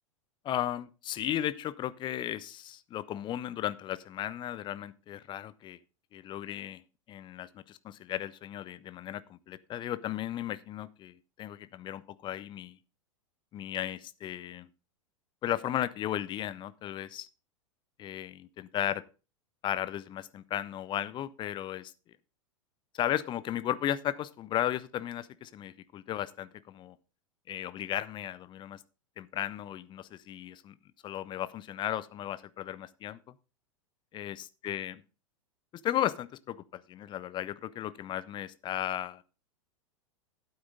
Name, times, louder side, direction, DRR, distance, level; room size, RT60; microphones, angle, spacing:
voice 1, 0.4-5.8 6.1-6.8 7.1-12.8 13.5-14.7 15.4-17.3 18.0-19.0 19.6-21.9 22.9-27.0 27.5-28.8 29.2-30.7 31.0-33.2 34.1-35.0 35.7-39.2, left 12 dB, 30° left, 17 dB, 0.7 m, -35 dB
12.0 x 8.8 x 3.8 m, 0.33 s
figure-of-eight pair, 90°, 17 cm